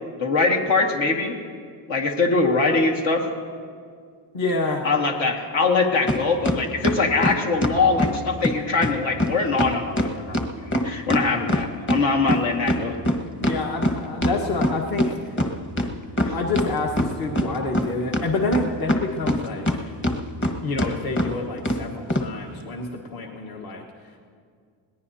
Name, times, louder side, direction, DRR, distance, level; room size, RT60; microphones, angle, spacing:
voice 1, 0.2-1.4 1.9-3.3 4.8-13.0 16.2-16.3, left 3 dB, 75° left, 1 dB, 2.1 m, -22 dB
voice 2, 4.3-4.9 13.4-15.4 16.2-19.9 20.6-23.8, left 3 dB, 50° left, 1 dB, 1.5 m, -28 dB
sound 1, 6.1-6.2 6.5-8.2 8.4-8.5 8.8-8.9 9.2-9.3 9.6-12.0 12.3-15.1 15.4-15.5 15.8-16.7 17.0-17.9 18.1-19.8 20.0-20.5 20.8-20.9 21.2-21.3 21.7-21.8 22.1-22.3, equal, 25° left, 1.4 m, -22 dB
21.5 x 18.5 x 2.8 m, 2.2 s
cardioid pair, 100°, 46 cm